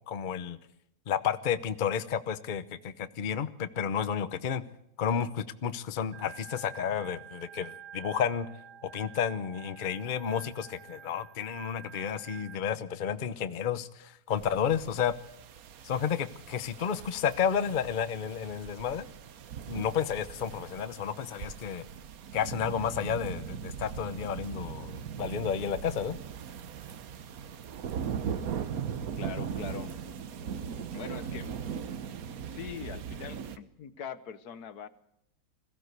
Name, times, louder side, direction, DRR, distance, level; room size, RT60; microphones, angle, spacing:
voice 1, 0.1-0.6 1.1-4.6 5.0-8.5 8.9-15.1 15.8-19.1 19.7-21.9 22.3-26.2, left 8 dB, 75° left, 12 dB, 0.4 m, -31 dB
Organ, 6.1-12.6, right 8 dB, 85° right, 2.0 m, -48 dB
sound 1, 14.3-33.6, right 7 dB, 55° right, 1.2 m, -39 dB
voice 2, 29.2-29.9 30.9-31.5 32.5-34.9, left 8 dB, 55° left, 13 dB, 1.4 m, -42 dB
22.0 x 15.5 x 8.1 m, 0.80 s
omnidirectional pair, 2.2 m